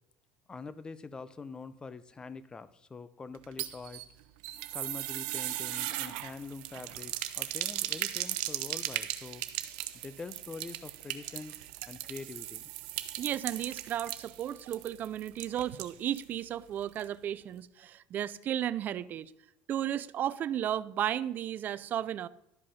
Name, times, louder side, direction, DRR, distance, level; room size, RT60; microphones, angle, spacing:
voice 1, 0.5-4.0 4.7-9.4 9.9-11.6 11.9-12.7, left 4 dB, 20° left, 0.6 m, -44 dB
sound 1, 3.3-16.3 16.6-16.7 17.0-17.1, right 15 dB, 85° right, 0.7 m, -38 dB
voice 2, 13.2-19.3 19.7-22.3, right 10 dB, 45° right, 0.4 m, -34 dB
12.0 x 5.1 x 5.6 m
supercardioid pair, 120°, 4 cm